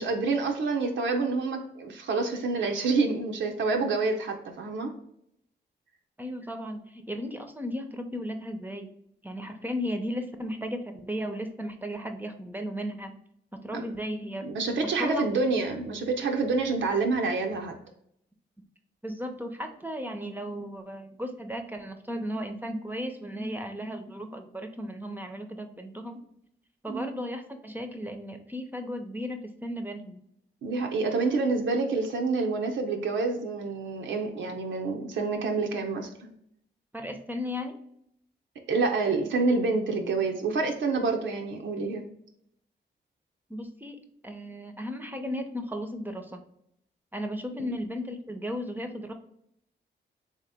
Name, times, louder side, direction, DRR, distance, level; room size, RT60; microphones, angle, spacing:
voice 1, 0.0-4.9 13.7-13.9 14.4-17.7 26.9-27.1 30.6-36.3 38.7-42.0 47.6-47.8, right 3 dB, 85° right, 3 dB, 0.6 m, -27 dB
voice 2, 6.2-8.9 9.2-13.1 13.5-14.5 15.0-15.2 19.0-26.3 26.8-30.2 36.9-37.8 43.5-46.4 47.1-49.1, equal, 10° right, 5 dB, 0.5 m, -35 dB
3.4 x 2.8 x 3.4 m, 0.72 s
cardioid pair, 70°, 19 cm